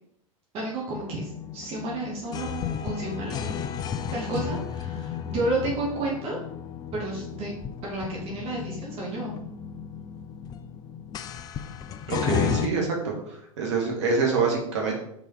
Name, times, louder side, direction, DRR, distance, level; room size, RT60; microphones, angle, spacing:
voice 1, 0.5-3.6 4.1-6.4 6.9-7.5 7.8-9.3, right 2 dB, 35° right, -3 dB, 1.9 m, -31 dB
sound 1, 0.9-12.7, left 8 dB, 20° left, 0.4 m, -33 dB
voice 2, 12.1-14.9, right 4 dB, 55° right, 0 dB, 1.9 m, -26 dB
5.5 x 4.8 x 4.7 m, 0.74 s
figure-of-eight pair, 90°, 18 cm